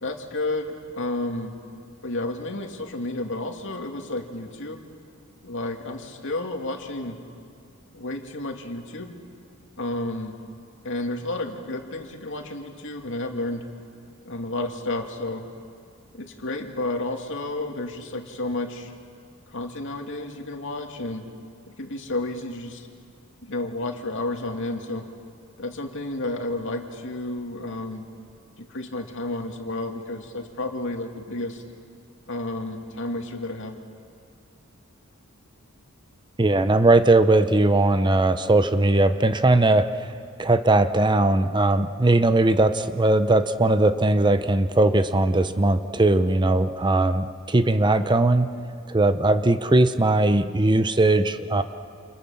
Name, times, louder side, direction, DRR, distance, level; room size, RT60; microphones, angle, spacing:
voice 1, 0.0-1.6 2.0-4.8 5.4-7.2 7.9-9.2 9.8-10.4 10.8-13.7 14.2-15.5 16.1-18.9 19.5-21.3 21.7-22.9 23.4-25.1 25.6-28.1 28.6-31.6 32.3-33.8, left 2 dB, 60° left, 3 dB, 2.6 m, -31 dB
voice 2, 36.4-40.1 40.4-48.5 48.9-51.6, right 2 dB, 20° right, 10 dB, 0.7 m, -19 dB
29.0 x 28.5 x 7.2 m, 2.3 s
head